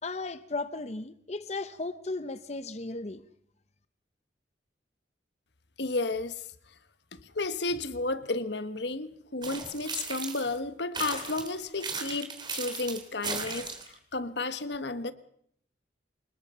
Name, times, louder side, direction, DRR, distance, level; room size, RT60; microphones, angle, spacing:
voice 1, 0.0-3.2, left 3 dB, 35° left, 0.8 m, -35 dB
voice 2, 5.8-6.4 7.1-13.7 14.1-15.1, left 3 dB, 70° left, 1.3 m, -32 dB
sound 1, 9.4-10.6 10.9-13.9, right 5 dB, 25° right, 3.1 m, -36 dB
25.5 x 21.0 x 5.6 m
head